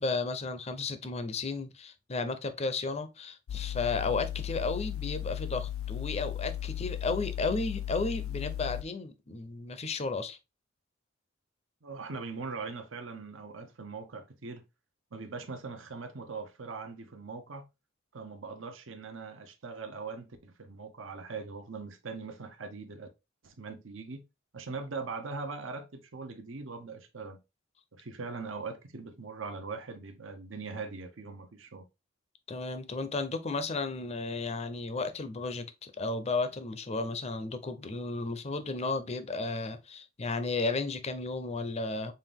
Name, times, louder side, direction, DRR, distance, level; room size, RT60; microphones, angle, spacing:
voice 1, 0.0-10.4 32.5-42.1, left 3 dB, 30° left, 0.5 m, -33 dB
sound 1, 3.5-8.8, left 12 dB, 80° left, 0.3 m, -36 dB
voice 2, 11.8-14.6 15.1-17.7 18.1-23.1 23.4-24.2 24.5-27.4 27.9-31.8, right 4 dB, 65° right, 0.8 m, -41 dB
5.5 x 2.6 x 3.5 m
head